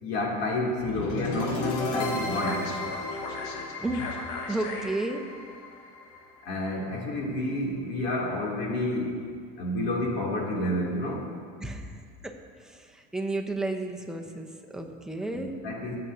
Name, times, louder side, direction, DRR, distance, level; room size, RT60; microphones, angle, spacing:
voice 1, 0.0-2.6 6.5-9.2 9.6-11.2 15.3-16.0, left 1 dB, 60° left, -3 dB, 2.9 m, -29 dB
sound 1, 0.8-6.9, left 3 dB, 85° left, 1.4 m, -34 dB
voice 2, 3.8-4.1 4.5-5.3 11.6-15.5, right 2 dB, 5° right, 2 dB, 0.9 m, -33 dB
18.5 x 7.8 x 2.8 m, 2.1 s
supercardioid pair, 125°, 20 cm